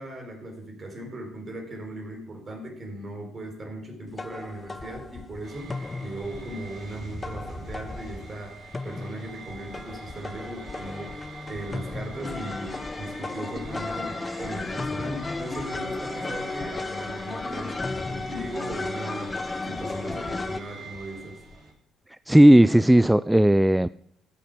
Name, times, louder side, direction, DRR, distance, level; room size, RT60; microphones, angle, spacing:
voice 1, 0.0-5.7 6.0-8.6 8.8-11.2 11.5-21.4, right 1 dB, 40° right, 2 dB, 3.8 m, -38 dB
sound 1, 4.2-20.6, left 3 dB, 25° left, 0.7 m, -34 dB
sound 2, 5.4-21.7, right 2 dB, 55° right, 3.9 m, -45 dB
voice 2, 22.1-23.9, right 1 dB, 5° right, 16 dB, 0.3 m, -16 dB
13.5 x 6.3 x 5.0 m, 0.72 s
hypercardioid pair, 50°, 0 cm